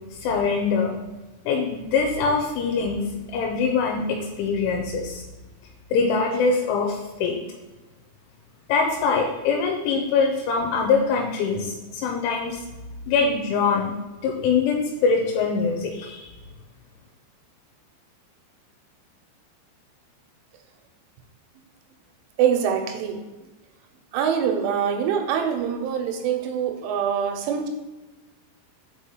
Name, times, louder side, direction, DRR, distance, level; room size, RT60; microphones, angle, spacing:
voice 1, 0.1-0.9 1.5-5.2 5.9-7.4 8.7-12.6 13.1-13.9 14.2-16.3, left 5 dB, 90° left, 0 dB, 3.2 m, -23 dB
voice 2, 22.4-23.2 24.1-27.7, right 8 dB, 90° right, 5 dB, 3.3 m, -24 dB
6.6 x 4.8 x 4.5 m, 1.2 s
omnidirectional pair, 5.4 m